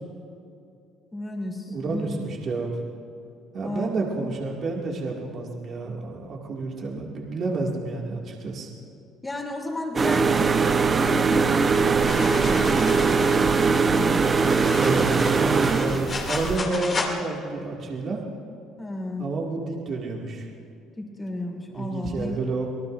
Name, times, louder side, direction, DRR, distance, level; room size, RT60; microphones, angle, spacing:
voice 1, 1.1-2.2 3.6-3.9 9.2-14.3 18.8-19.3 21.0-22.4, left 1 dB, 15° left, 0 dB, 3.3 m, -33 dB
voice 2, 1.7-2.8 3.5-8.7 14.7-18.2 19.2-20.5 21.7-22.7, right 3 dB, 50° right, -2 dB, 2.3 m, -29 dB
sound 1, 10.0-16.6, right 5 dB, 30° right, 0.8 m, -21 dB
sound 2, 12.0-17.1, left 4 dB, 35° left, 2.6 m, -34 dB
25.5 x 18.5 x 2.6 m, 2.6 s
cardioid pair, 110°, 0 cm